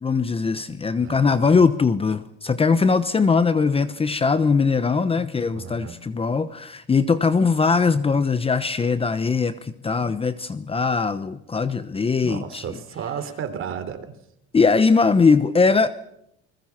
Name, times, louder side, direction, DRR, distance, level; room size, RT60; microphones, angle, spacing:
voice 1, 0.0-12.6 14.5-15.9, left 4 dB, 20° left, 13 dB, 1.0 m, -20 dB
voice 2, 1.0-1.7 5.5-5.9 12.3-14.1, right 8 dB, 45° right, 10 dB, 3.5 m, -33 dB
29.0 x 21.0 x 6.0 m, 0.76 s
cardioid pair, 130°, 29 cm